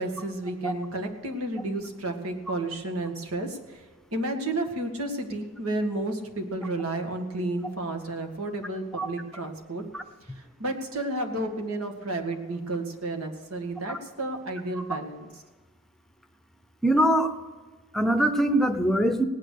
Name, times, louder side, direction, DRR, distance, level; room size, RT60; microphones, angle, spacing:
voice 1, 0.0-3.9 4.1-9.8 10.3-15.3, right 2 dB, 85° right, 4 dB, 2.0 m, -31 dB
voice 2, 16.8-17.3 17.9-19.3, right 1 dB, ahead, 7 dB, 0.7 m, -22 dB
18.0 x 9.1 x 6.5 m, 1.3 s
head